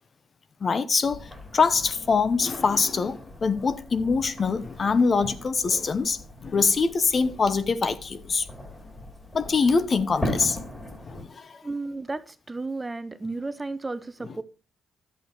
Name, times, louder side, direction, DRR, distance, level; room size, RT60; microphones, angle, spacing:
voice 1, 0.6-8.5 9.3-10.6 11.0-11.6, left 4 dB, 40° left, 0.8 m, -24 dB
sound 1, 1.0-11.2, left 1 dB, 15° left, 3.1 m, -39 dB
voice 2, 11.6-14.4, right 3 dB, 20° right, 0.6 m, -33 dB
11.0 x 8.0 x 3.1 m
cardioid pair, 90°, 0 cm